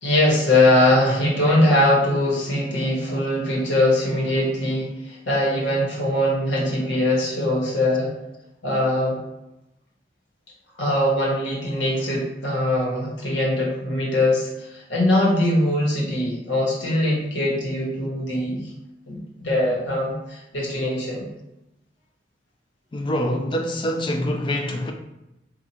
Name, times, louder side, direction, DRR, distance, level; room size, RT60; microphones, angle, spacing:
voice 1, 0.0-8.2 8.6-9.2 10.8-18.7 19.1-21.3, left 1 dB, 85° left, 1.2 m, -21 dB
voice 2, 22.9-24.9, equal, 25° left, 0.4 m, -25 dB
2.8 x 2.4 x 4.2 m
head